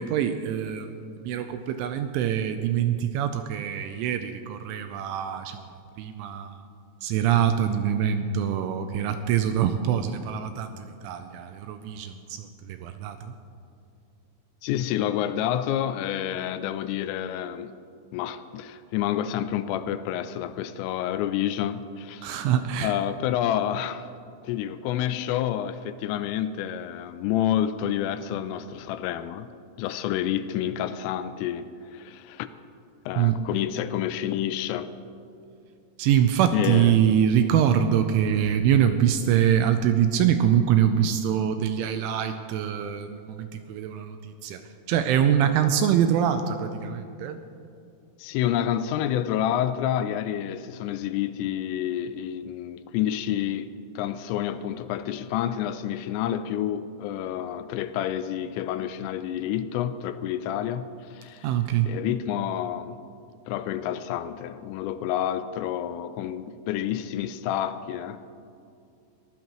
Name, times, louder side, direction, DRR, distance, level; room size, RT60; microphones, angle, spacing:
voice 1, 0.0-5.6 6.0-6.6 7.0-13.3 22.2-23.0 33.2-33.4 36.0-44.6 44.9-47.4 61.4-61.9, right 9 dB, 85° right, 2.9 m, -24 dB
voice 2, 14.6-17.7 18.1-22.5 22.8-24.1 24.4-29.5 29.8-32.5 33.1-34.9 36.5-37.2 48.2-61.5 61.9-63.0 63.5-68.2, left 11 dB, 85° left, 3.1 m, -29 dB
23.0 x 16.0 x 3.1 m
omnidirectional pair, 5.9 m